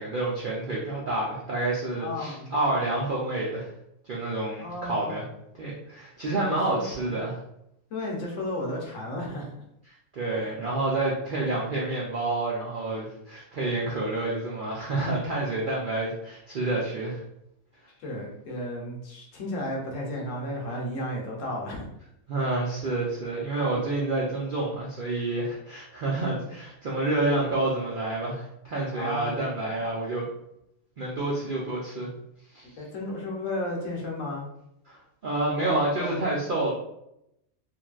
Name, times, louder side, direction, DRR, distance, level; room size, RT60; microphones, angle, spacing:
voice 1, 0.0-3.7 4.0-5.2 5.6-7.4 10.1-17.2 22.3-30.2 31.0-32.1 32.5-32.7 34.9-35.0 35.2-36.7, right 2 dB, 65° right, -5 dB, 0.5 m, -28 dB
voice 2, 2.0-2.5 4.6-5.2 6.3-7.2 7.9-9.5 18.0-21.8 28.9-29.8 32.8-34.5 35.6-36.2, left 1 dB, 65° left, -2 dB, 1.0 m, -33 dB
3.1 x 2.5 x 2.3 m, 0.80 s
omnidirectional pair, 1.5 m